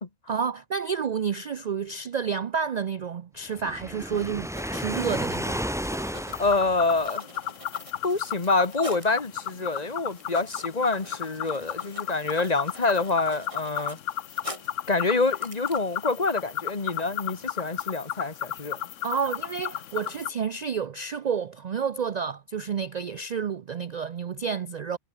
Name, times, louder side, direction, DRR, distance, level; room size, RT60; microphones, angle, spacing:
voice 1, 0.3-5.6 19.0-25.0, right 6 dB, 65° right, 0.4 m, -30 dB
Waves surf, 3.6-7.1, equal, ahead, 1.4 m, -32 dB
Writing, 4.4-9.2 9.8-9.9 10.1-14.9 15.2-15.8, right 1 dB, 20° right, 7.3 m, -46 dB
sound 1, 6.3-20.3, left 10 dB, 65° left, 1.1 m, -34 dB
voice 2, 6.4-7.2 8.0-14.0 14.9-18.8, left 3 dB, 30° left, 1.5 m, -26 dB
omnidirectional pair, 1.4 m